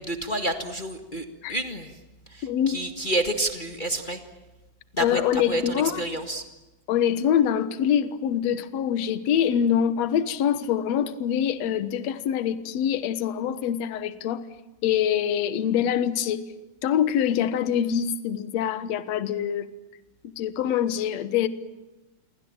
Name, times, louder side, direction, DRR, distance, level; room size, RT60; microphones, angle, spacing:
voice 1, 0.0-1.9 2.3-4.2 4.9-6.4, right 1 dB, 25° left, 6 dB, 1.2 m, -29 dB
voice 2, 2.4-2.8 5.0-6.2 6.9-14.5 14.8-16.4 16.8-19.7 20.4-21.5, left 9 dB, 60° left, 13 dB, 2.3 m, -24 dB
28.0 x 24.0 x 8.9 m, 1.1 s
omnidirectional pair, 3.7 m